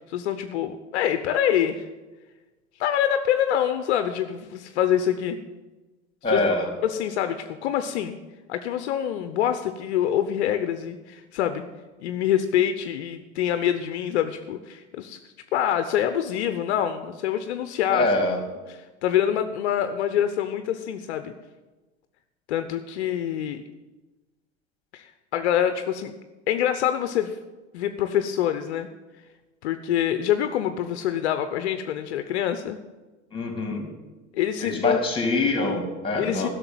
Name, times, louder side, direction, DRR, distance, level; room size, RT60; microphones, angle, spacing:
voice 1, 0.0-1.9 2.8-5.4 6.2-6.4 6.8-8.2 8.5-11.6 12.0-15.2 15.5-18.1 18.7-21.3 22.5-23.6 24.9-26.1 26.5-27.4 27.7-28.9 29.6-32.8 34.3-35.0 36.2-36.5, left 10 dB, 70° left, 9 dB, 0.9 m, -25 dB
voice 2, 6.2-6.7 17.9-18.4 33.3-33.9 34.6-36.5, left 2 dB, 15° left, 3 dB, 3.4 m, -24 dB
11.5 x 6.7 x 9.2 m, 1.2 s
hypercardioid pair, 85°, 34 cm